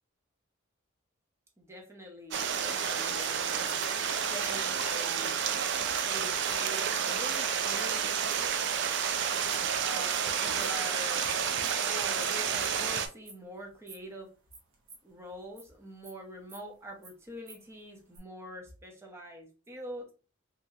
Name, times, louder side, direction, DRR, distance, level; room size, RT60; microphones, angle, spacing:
voice 1, 1.6-3.8 4.2-5.3 6.0-8.4 9.8-11.3 11.8-14.3 15.0-20.1, equal, 15° right, 0 dB, 0.7 m, -44 dB
Stream, 2.3-13.1, right 7 dB, 60° right, 0.3 m, -30 dB
sound 1, 3.2-9.8 10.1-10.3 10.6-11.3 11.6-14.1 14.4-15.7 16.0-17.7 17.9-18.2, right 3 dB, 85° right, 1.0 m, -52 dB
2.9 x 2.7 x 2.4 m, 0.34 s
head